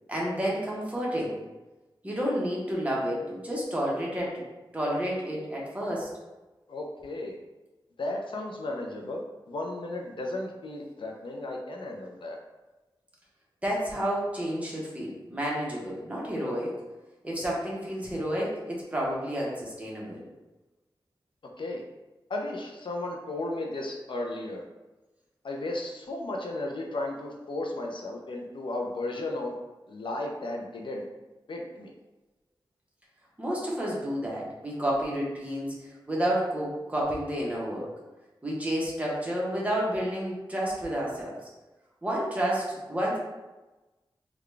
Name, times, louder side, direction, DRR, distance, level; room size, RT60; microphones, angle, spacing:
voice 1, 0.1-1.3 2.0-4.4 4.7-6.1 13.6-16.7 17.2-20.2 33.4-37.9 38.4-41.4 42.0-43.2, equal, 15° right, -4 dB, 1.0 m, -30 dB
voice 2, 6.7-7.3 8.0-9.2 9.5-12.4 21.6-21.8 22.3-24.6 25.4-29.5 29.9-31.0 31.5-31.9, left 2 dB, 75° left, 1 dB, 0.5 m, -34 dB
3.8 x 2.3 x 3.3 m, 1.1 s
wide cardioid pair, 100°, 8 cm